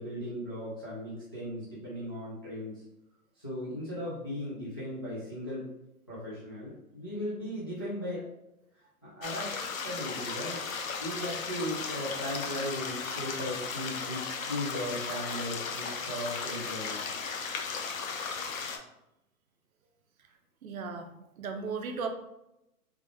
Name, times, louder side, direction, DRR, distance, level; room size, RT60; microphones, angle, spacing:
voice 1, 0.0-2.8 3.4-5.6 6.1-8.2 9.0-9.5 9.8-10.7 11.0-17.0, equal, 15° left, -10 dB, 0.4 m, -37 dB
sound 1, 9.2-18.8, left 5 dB, 60° left, 0.6 m, -36 dB
voice 2, 20.6-22.1, right 5 dB, 65° right, 5 dB, 0.7 m, -36 dB
3.5 x 2.4 x 3.3 m, 0.86 s
hypercardioid pair, 150°, 46 cm